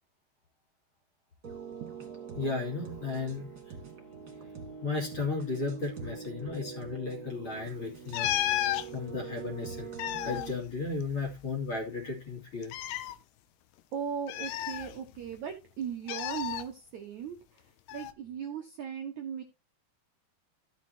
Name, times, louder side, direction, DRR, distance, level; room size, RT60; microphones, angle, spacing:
sound 1, 1.4-10.5, right 6 dB, 30° right, 2.3 m, -43 dB
voice 1, 2.4-3.5 4.8-8.3 8.9-12.7, left 4 dB, 35° left, 0 dB, 2.5 m, -34 dB
sound 2, 8.1-8.9 9.8-11.5 11.7-11.8 12.6-13.1 14.3-15.3 16.1-16.6 17.9-18.1, left 13 dB, 85° left, 2.8 m, -33 dB
voice 2, 13.9-17.4 17.9-19.4, right 8 dB, 70° right, 5 dB, 1.8 m, -38 dB
14.0 x 7.4 x 2.8 m, 0.26 s
omnidirectional pair, 4.9 m